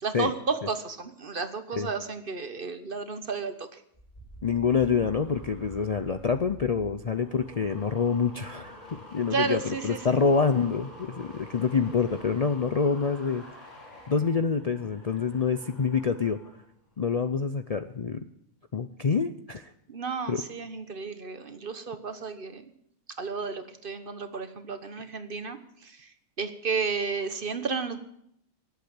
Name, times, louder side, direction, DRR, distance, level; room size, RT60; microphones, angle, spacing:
voice 1, 0.0-3.8 9.3-10.2 19.9-22.7 23.2-26.1 26.4-28.0, right 4 dB, 40° right, 10 dB, 1.2 m, -32 dB
sound 1, 3.9-16.6 16.9-17.3, left 1 dB, 25° left, 6.3 m, -47 dB
voice 2, 4.4-13.4 14.1-16.4 17.0-18.2 18.7-19.7 20.3-20.4, left 5 dB, 85° left, 9 dB, 0.3 m, -26 dB
18.0 x 8.3 x 8.7 m, 0.73 s
omnidirectional pair, 1.6 m